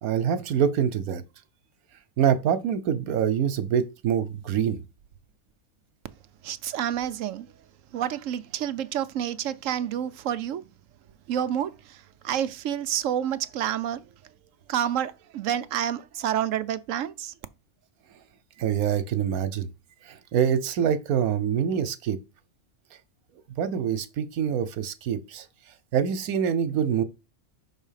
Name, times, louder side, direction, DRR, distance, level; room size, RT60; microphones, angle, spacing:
voice 1, 0.0-1.2 2.2-4.8 18.6-19.7 20.1-22.2 23.6-25.5 25.9-27.0, right 8 dB, 85° right, 1.3 m, -25 dB
voice 2, 6.4-7.5 7.9-10.6 11.3-14.0 14.7-17.3, right 10 dB, 70° right, 0.9 m, -29 dB
5.7 x 4.1 x 5.6 m
omnidirectional pair, 1.5 m